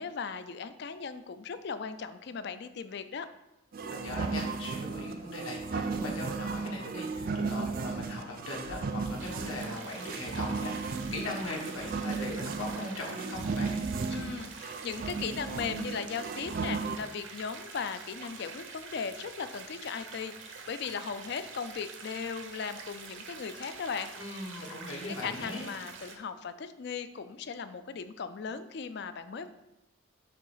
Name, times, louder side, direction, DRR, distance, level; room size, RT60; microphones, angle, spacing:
voice 1, 0.0-3.3 14.1-24.1 25.2-29.5, left 6 dB, 50° left, 11 dB, 0.4 m, -37 dB
sound 1, 3.7-17.0, right 4 dB, 45° right, 0.4 m, -35 dB
voice 2, 3.9-13.7 24.1-25.7, left 2 dB, 75° left, -2 dB, 1.5 m, -39 dB
sound 2, 9.2-26.2, right 5 dB, 60° right, 0.7 m, -46 dB
6.5 x 3.2 x 5.5 m, 0.91 s
head